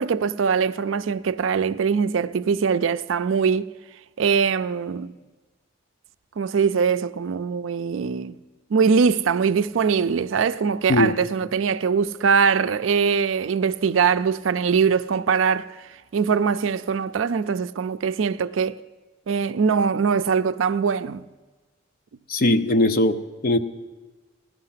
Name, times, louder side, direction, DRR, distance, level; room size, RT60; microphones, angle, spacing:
voice 1, 0.0-3.6 4.2-5.1 6.4-8.4 8.7-18.8 19.3-21.2, right 6 dB, 85° right, 0.4 m, -22 dB
voice 2, 22.3-23.6, left 1 dB, 50° left, 0.7 m, -20 dB
16.5 x 12.0 x 5.8 m
head